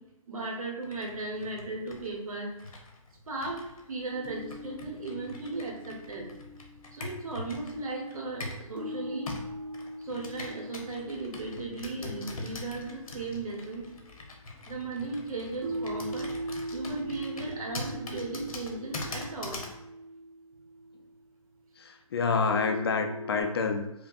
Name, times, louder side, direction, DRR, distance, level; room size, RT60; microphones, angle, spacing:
voice 1, 0.3-2.5 3.3-3.6 3.9-6.3 6.9-9.3 10.0-13.9 14.6-16.3 16.7-19.6, right 3 dB, 75° right, 0 dB, 1.2 m, -36 dB
Computer keyboard, 0.8-8.7 9.3-19.8, left 2 dB, 75° left, 0.9 m, -43 dB
sound 1, 4.1-7.4 8.8-14.2 15.6-21.1 22.5-23.4, equal, 35° right, 0.7 m, -41 dB
voice 2, 21.8-24.1, left 4 dB, 45° left, 5 dB, 0.4 m, -28 dB
5.0 x 2.2 x 2.6 m, 0.91 s
hypercardioid pair, 160°, 18 cm